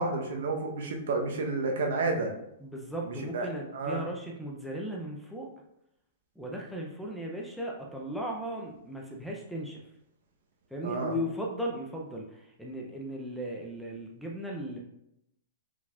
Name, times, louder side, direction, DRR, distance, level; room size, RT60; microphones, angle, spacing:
voice 1, 0.0-2.4 3.0-4.0 10.8-11.2, right 3 dB, 70° right, 3 dB, 0.8 m, -31 dB
voice 2, 2.6-5.5 6.4-9.8 10.7-14.8, equal, ahead, -2 dB, 0.5 m, -37 dB
4.7 x 3.8 x 2.3 m, 0.80 s
hypercardioid pair, 165°, 0 cm